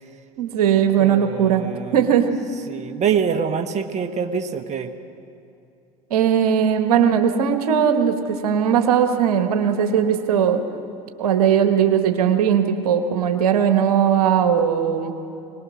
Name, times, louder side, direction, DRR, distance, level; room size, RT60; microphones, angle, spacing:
voice 1, 0.4-2.3 6.1-10.7 11.2-15.1, right 8 dB, 85° right, 6 dB, 1.5 m, -19 dB
voice 2, 1.0-2.1 2.7-4.9, right 7 dB, 35° right, 7 dB, 1.4 m, -25 dB
22.0 x 19.5 x 6.4 m, 2.7 s
hypercardioid pair, 85°, 19 cm